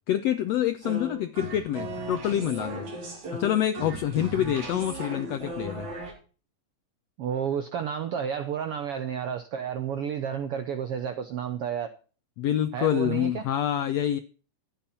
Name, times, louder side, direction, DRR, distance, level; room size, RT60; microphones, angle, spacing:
voice 1, 0.1-2.9 3.3-5.9 12.4-14.2, left 11 dB, 80° left, 1.4 m, -27 dB
sound 1, 0.8-6.1, right 2 dB, 60° right, 5.2 m, -36 dB
voice 2, 7.2-11.9 12.7-13.4, right 8 dB, 85° right, 1.3 m, -31 dB
14.5 x 10.0 x 4.3 m
omnidirectional pair, 3.9 m